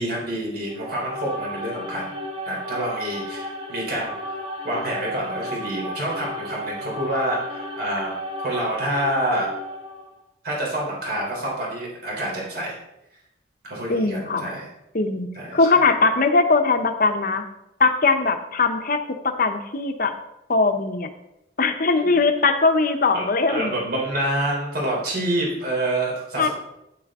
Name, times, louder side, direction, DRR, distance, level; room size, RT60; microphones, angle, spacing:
voice 1, 0.0-2.2 2.4-4.3 4.6-8.1 8.4-9.5 10.4-12.8 13.6-14.7 15.3-15.8 22.0-22.2 23.1-26.5, right 1 dB, 60° right, -3 dB, 3.6 m, -27 dB
sound 1, 0.7-10.1, equal, 30° right, 1.3 m, -33 dB
voice 2, 13.9-14.5 14.9-17.4 17.8-20.1 20.5-21.1 21.6-23.7 26.4-26.5, left 3 dB, 55° left, 7 dB, 0.9 m, -20 dB
9.7 x 8.3 x 3.7 m, 0.85 s
head